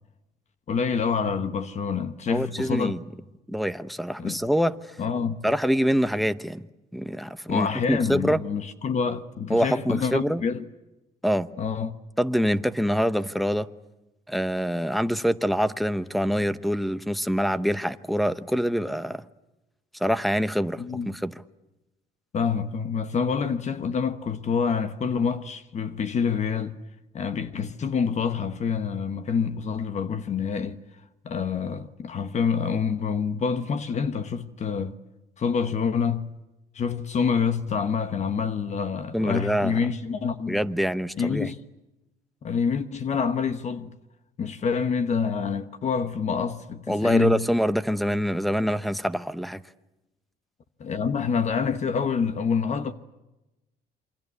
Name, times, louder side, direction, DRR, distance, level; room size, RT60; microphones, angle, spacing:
voice 1, 0.7-2.9 4.2-4.4 5.0-5.5 7.5-10.7 11.6-12.0 20.8-21.1 22.3-26.8 27.1-30.8 31.2-35.0 35.4-36.4 36.7-40.6 41.2-41.6 42.4-44.0 44.4-47.5 50.8-52.9, left 6 dB, 45° left, 1.2 m, -27 dB
voice 2, 2.3-3.0 3.5-4.7 5.4-6.6 6.9-8.4 9.5-10.4 11.2-11.5 12.2-13.7 14.3-19.2 20.0-21.4 39.1-39.8 40.5-41.5 46.9-49.6, equal, ahead, 0.9 m, -25 dB
28.0 x 24.0 x 8.3 m
cardioid pair, 110°, 17 cm